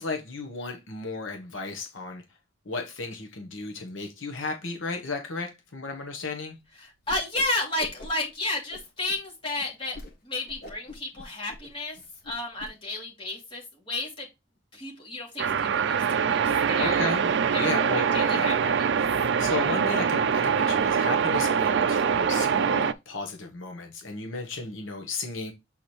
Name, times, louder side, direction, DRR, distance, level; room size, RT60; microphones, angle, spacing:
voice 1, 0.0-2.2 2.6-6.6 16.8-18.5 19.4-25.5, left 3 dB, 75° left, 1.1 m, -34 dB
voice 2, 6.8-10.0 10.2-12.0 12.2-14.3 14.7-17.1 17.5-17.7 17.9-18.9, left 2 dB, 25° left, 2.5 m, -32 dB
Whoosh swoosh swish, 7.0-7.5 7.8-8.3 8.7-9.2 9.6-9.7 9.9-10.1 10.5-12.7, left 2 dB, 50° left, 1.3 m, -43 dB
sound 1, 15.4-22.9, right 6 dB, 55° right, 0.4 m, -24 dB
7.6 x 4.3 x 3.2 m
head